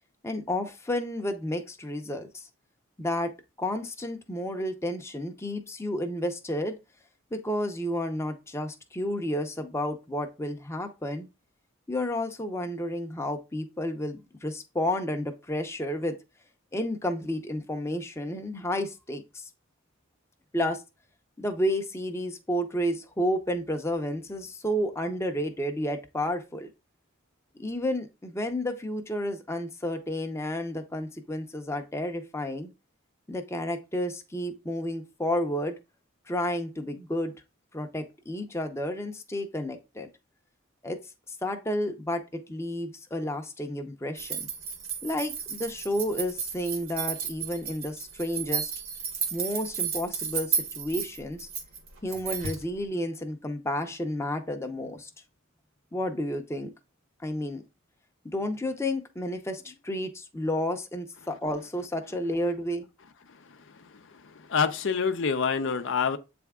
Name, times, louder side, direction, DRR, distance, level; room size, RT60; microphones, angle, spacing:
voice 1, 0.2-2.5 3.0-3.3 3.6-6.8 7.3-11.3 11.9-16.2 16.7-19.5 20.5-20.8 21.4-26.7 27.6-32.7 33.3-35.8 36.3-37.3 37.7-40.1 40.8-41.0 41.4-44.5 45.0-48.7 49.3-51.5 52.0-55.1 55.9-56.7 57.2-57.6 58.2-62.9, left 1 dB, 15° left, 0.7 m, -31 dB
sound 1, 44.2-52.6, right 7 dB, 80° right, 1.7 m, -33 dB
voice 2, 64.5-66.2, left 6 dB, 65° left, 0.6 m, -26 dB
8.1 x 3.5 x 3.6 m
head